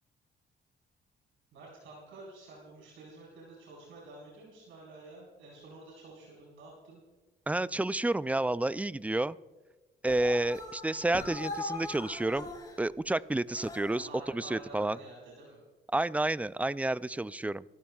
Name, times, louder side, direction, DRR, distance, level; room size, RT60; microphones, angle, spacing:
voice 1, 1.5-7.0 13.9-15.6, right 2 dB, 85° right, -4 dB, 4.5 m, -50 dB
voice 2, 7.5-9.4 10.0-12.5 12.8-14.1 14.3-15.0 15.9-17.6, right 2 dB, 5° right, 17 dB, 0.3 m, -30 dB
sound 1, 10.1-12.8 13.5-14.1, left 2 dB, 20° left, 3.9 m, -41 dB
26.0 x 13.0 x 2.4 m, 1.2 s
cardioid pair, 90°, 20 cm